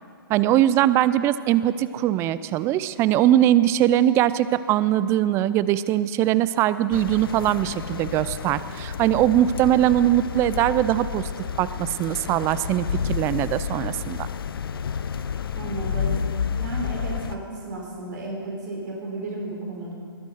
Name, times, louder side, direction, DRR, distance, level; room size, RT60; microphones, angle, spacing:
voice 1, 0.3-11.3 11.6-14.3, right 12 dB, 20° right, 16 dB, 0.4 m, -21 dB
sound 1, 6.9-17.4, left 7 dB, 70° left, 0.7 m, -30 dB
voice 2, 15.6-16.2 16.6-19.9, right 2 dB, 55° right, -1 dB, 3.9 m, -33 dB
21.5 x 8.3 x 6.4 m, 2.2 s
figure-of-eight pair, 125°, 12 cm